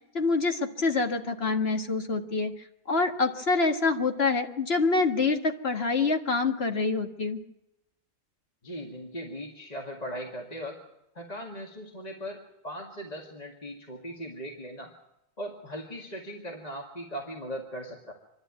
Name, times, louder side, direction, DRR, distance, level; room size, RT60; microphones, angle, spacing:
voice 1, 0.1-2.5 2.9-7.4, left 3 dB, 50° left, 4 dB, 2.0 m, -26 dB
voice 2, 8.6-10.8 11.2-14.9 15.4-18.1, equal, 30° left, 1 dB, 2.1 m, -39 dB
26.0 x 12.0 x 9.6 m, 0.88 s
omnidirectional pair, 1.4 m